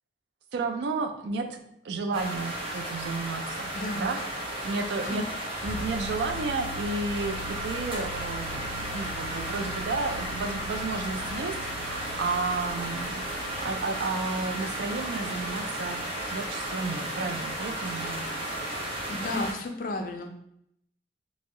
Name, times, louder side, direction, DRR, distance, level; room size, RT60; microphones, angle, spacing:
voice 1, 0.5-4.2 4.6-5.2 5.6-13.2 13.6-18.3, right 3 dB, 75° right, 6 dB, 0.4 m, -32 dB
sound 1, 2.1-19.5, right 1 dB, 30° right, 0.6 m, -34 dB
voice 2, 3.7-4.1 5.1-5.2 19.1-20.3, left 2 dB, 50° left, 4 dB, 0.4 m, -32 dB
sound 2, 5.6-14.3, left 2 dB, 50° right, 1.4 m, -42 dB
2.6 x 2.0 x 3.6 m, 0.73 s
head